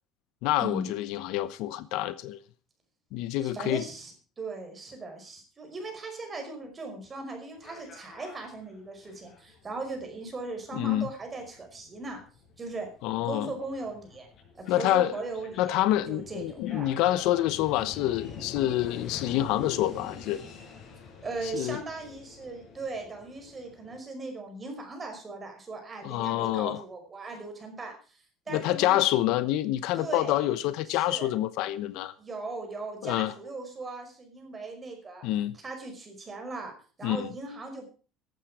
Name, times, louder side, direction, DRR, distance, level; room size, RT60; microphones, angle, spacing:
voice 1, 0.4-2.4 3.1-3.8 10.7-11.1 13.0-13.5 14.7-15.1 15.6-20.4 21.4-21.8 26.0-26.8 28.5-32.1 33.0-33.3 35.2-35.6 37.0-37.3, left 14 dB, 60° left, 1.0 m, -27 dB
voice 2, 3.4-12.2 12.6-12.9 13.2-14.3 14.5-15.8 16.1-16.9 21.2-29.0 29.9-30.5 30.9-31.3 32.2-35.3 35.5-37.9, right 3 dB, 15° right, 5.3 m, -38 dB
sound 1, 7.5-24.0, left 5 dB, 35° left, 6.0 m, -46 dB
15.0 x 12.0 x 4.9 m
cardioid pair, 170°, 0 cm